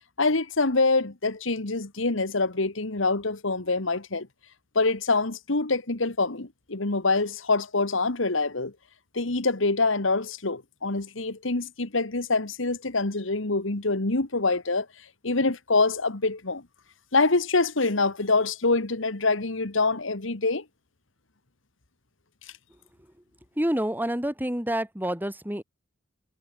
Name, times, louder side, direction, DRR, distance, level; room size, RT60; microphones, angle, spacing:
voice 1, 0.2-4.3 4.8-8.7 9.1-14.9 15.2-16.6 17.1-20.6, left 3 dB, 75° left, 1.8 m, -25 dB
voice 2, 23.6-25.6, right 1 dB, 10° right, 3.1 m, -28 dB
head